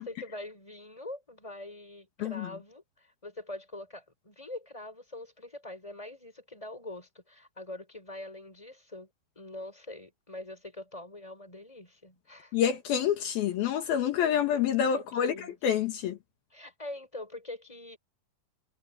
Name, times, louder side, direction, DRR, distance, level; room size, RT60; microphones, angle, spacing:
voice 1, 0.0-9.1 9.3-12.5 14.9-15.5 16.5-18.0, left 2 dB, 10° left, 6.5 m, -44 dB
voice 2, 12.5-16.2, left 9 dB, 75° left, 3.4 m, -27 dB
omnidirectional pair, 4.4 m